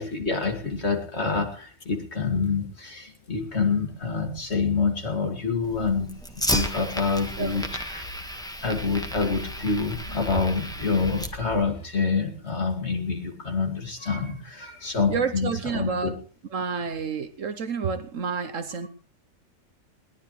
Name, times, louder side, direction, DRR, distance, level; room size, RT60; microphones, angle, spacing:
voice 1, 0.0-8.1 8.6-16.1, left 4 dB, 45° left, 2.7 m, -27 dB
Fire, 5.6-11.6, equal, 5° left, 1.5 m, -33 dB
voice 2, 15.1-16.2 16.5-18.9, right 5 dB, 60° right, 1.3 m, -29 dB
21.0 x 18.0 x 3.3 m
omnidirectional pair, 1.6 m